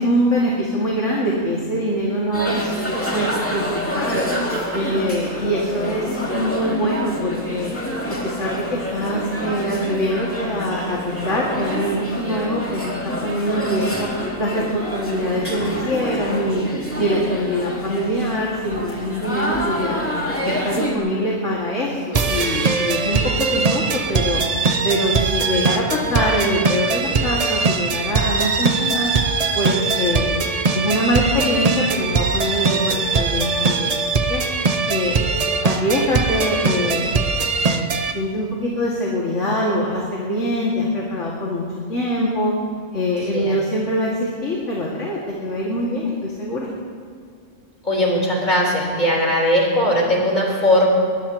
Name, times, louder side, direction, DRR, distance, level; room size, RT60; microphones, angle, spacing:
voice 1, 0.0-3.7 3.9-4.2 4.7-7.7 8.1-12.9 13.2-14.1 14.4-16.6 17.0-20.1 20.4-24.4 24.8-29.1 29.5-30.4 30.7-33.9 34.3-34.4 34.9-35.3 35.6-37.1 37.6-37.9 38.1-42.5 42.9-46.7, equal, 70° left, -4 dB, 2.7 m, -23 dB
sound 1, 2.3-21.0, left 1 dB, 10° left, 2.6 m, -27 dB
sound 2, 4.4-6.8, equal, 10° right, 4.5 m, -38 dB
sound 3, 22.1-38.1, right 4 dB, 40° right, 0.7 m, -21 dB
voice 2, 47.8-50.9, left 1 dB, 35° left, -3 dB, 4.5 m, -19 dB
22.5 x 20.0 x 3.1 m, 2.2 s
omnidirectional pair, 1.3 m